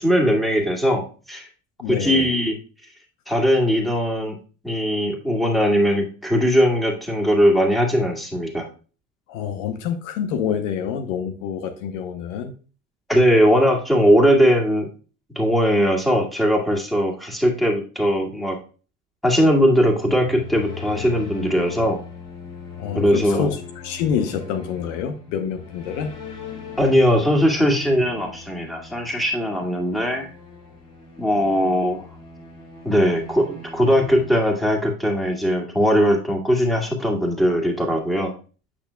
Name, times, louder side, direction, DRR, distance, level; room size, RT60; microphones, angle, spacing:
voice 1, 0.0-1.4 1.9-2.6 3.3-4.4 4.6-8.7 13.1-14.9 15.4-18.6 19.2-22.0 22.9-23.5 26.8-30.3 31.2-32.1 32.9-38.3, equal, ahead, 0 dB, 1.9 m, -19 dB
voice 2, 1.8-2.3 9.3-12.5 22.8-26.1, left 7 dB, 70° left, 7 dB, 0.8 m, -27 dB
sound 1, 20.0-35.2, left 5 dB, 40° left, 3.2 m, -40 dB
7.9 x 6.0 x 2.3 m, 0.36 s
hypercardioid pair, 65°, 40 cm